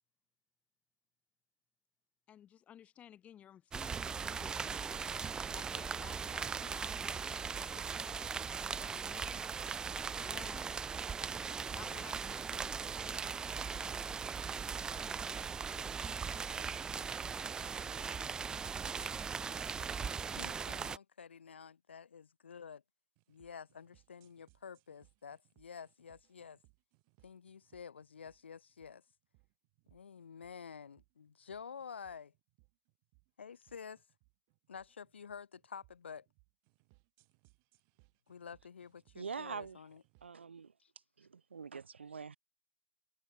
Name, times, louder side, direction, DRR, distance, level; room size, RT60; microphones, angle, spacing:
voice 1, 2.3-5.1 5.5-8.4 8.8-10.8 11.7-14.3 19.2-19.5, left 10 dB, 20° left, 1.9 m, -56 dB
sound 1, 3.7-21.0, right 6 dB, 10° right, 0.4 m, -39 dB
voice 2, 20.4-22.8 23.3-26.6 27.2-29.0 29.9-32.3 33.4-34.0 34.7-36.3 38.3-40.0 40.8-40.9, left 6 dB, 85° left, 2.1 m, -50 dB
sound 2, 23.2-40.4, right 39 dB, 40° right, 6.7 m, -71 dB
voice 3, 39.1-39.8 40.2-40.7 41.2-42.4, right 5 dB, 90° right, 2.7 m, -44 dB
hypercardioid pair, 125°, 6 cm